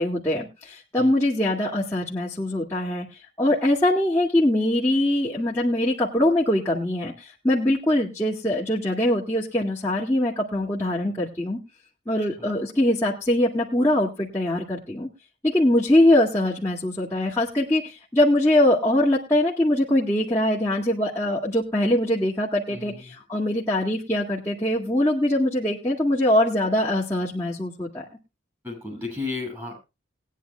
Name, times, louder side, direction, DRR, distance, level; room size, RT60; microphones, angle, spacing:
voice 1, 0.0-3.1 3.4-11.6 12.1-15.1 15.4-28.0, left 1 dB, 15° left, -7 dB, 2.0 m, -22 dB
voice 2, 28.6-29.8, left 3 dB, 15° right, 2 dB, 6.8 m, -33 dB
20.5 x 10.0 x 2.2 m, 0.27 s
head